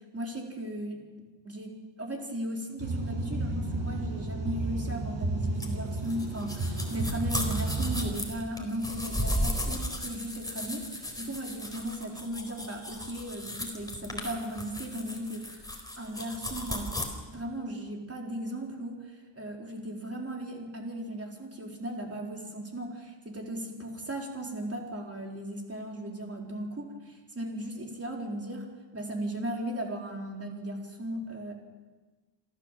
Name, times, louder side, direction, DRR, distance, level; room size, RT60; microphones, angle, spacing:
voice 1, 0.1-1.0 1.4-15.7 16.0-16.9 17.3-31.5, right 1 dB, 30° right, 0 dB, 4.3 m, -37 dB
sound 1, 2.8-8.1, right 2 dB, 75° right, 5.9 m, -32 dB
sound 2, 5.6-17.0, left 1 dB, 10° left, 4.1 m, -35 dB
27.0 x 14.5 x 7.6 m, 1.3 s
wide cardioid pair, 110°, 45 cm